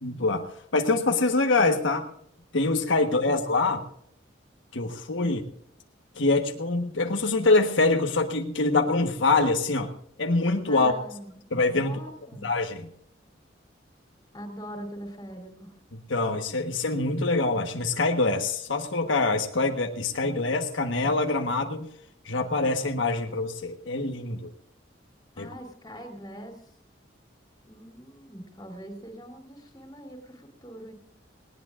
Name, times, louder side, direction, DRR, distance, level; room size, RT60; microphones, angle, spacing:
voice 1, 0.0-2.1 2.5-3.8 4.7-5.4 6.2-9.9 10.2-10.9 11.5-12.0 12.4-12.9 16.1-21.9 22.2-24.5 25.4-25.5, left 3 dB, 85° left, 4 dB, 1.4 m, -25 dB
voice 2, 2.9-3.3 5.2-5.4 10.6-11.4 11.7-12.5 14.3-15.8 25.3-26.7 27.6-30.9, equal, 20° left, 3 dB, 3.3 m, -42 dB
19.5 x 19.0 x 2.5 m, 0.70 s
head